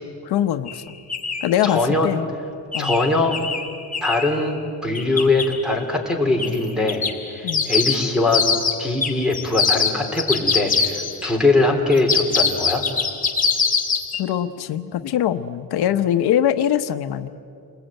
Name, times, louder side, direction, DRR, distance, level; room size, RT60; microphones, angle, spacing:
voice 1, 0.2-0.8 1.4-2.3 2.7-3.0 7.4-7.7 14.2-17.3, left 10 dB, 85° left, 9 dB, 1.0 m, -22 dB
sound 1, 0.7-0.8 1.1-1.5 2.7-4.4 5.0-5.5 6.4-6.6 6.9-11.3 11.9-14.2, left 5 dB, 20° left, 2.6 m, -23 dB
voice 2, 1.6-2.1 2.8-3.4 4.0-8.4 8.8-12.8, left 2 dB, ahead, 4 dB, 3.5 m, -21 dB
29.0 x 20.5 x 9.0 m, 2.4 s
cardioid pair, 150°, 38 cm